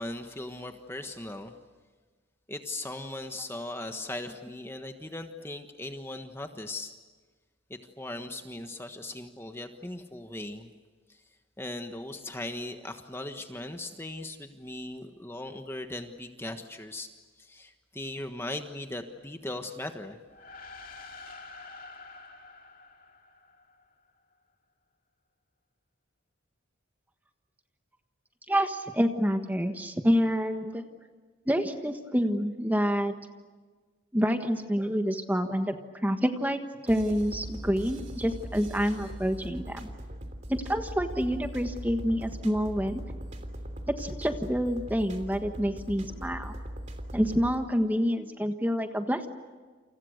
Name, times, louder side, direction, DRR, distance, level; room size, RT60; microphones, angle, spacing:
voice 1, 0.0-1.6 2.5-6.9 7.7-10.7 11.1-11.2 11.6-17.1 17.4-20.2, left 1 dB, 10° left, 6 dB, 1.4 m, -38 dB
sound 1, 20.2-23.9, left 3 dB, 45° left, 2.5 m, -47 dB
voice 2, 28.5-30.8 31.5-33.1 34.1-35.8 36.0-39.9 40.5-43.0 44.0-46.5 47.1-49.3, equal, 10° right, 6 dB, 1.4 m, -27 dB
sound 2, 36.9-47.6, equal, 35° right, 3.2 m, -40 dB
29.0 x 28.5 x 6.6 m, 1.4 s
head